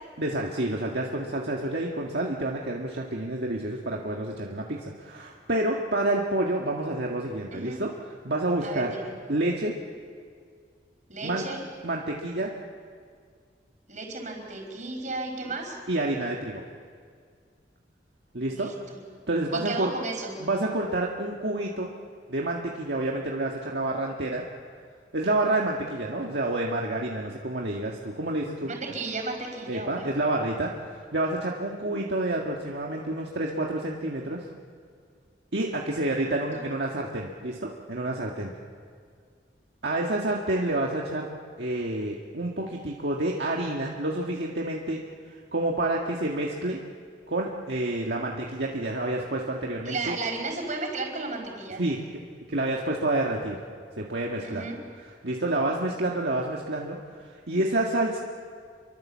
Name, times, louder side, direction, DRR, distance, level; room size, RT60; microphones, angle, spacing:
voice 1, 0.2-7.9 8.2-8.9 9.3-9.7 11.2-11.5 11.8-12.5 15.9-16.6 18.3-18.7 19.3-19.9 20.4-21.9 22.3-24.4 25.1-28.7 29.7-34.4 35.5-38.5 39.8-41.3 41.6-45.0 45.5-46.8 47.3-50.2 51.8-52.0 52.5-53.6 54.0-54.6 55.2-58.2, right 2 dB, 65° right, -1 dB, 1.8 m, -28 dB
voice 2, 7.5-7.8 8.6-9.1 11.1-11.6 13.9-15.8 18.5-19.0 19.5-20.3 28.7-30.1 36.2-36.3 36.5-36.6 49.8-51.8 54.4-54.8, right 3 dB, 45° right, 2 dB, 4.9 m, -34 dB
28.0 x 23.5 x 7.4 m, 2.1 s
head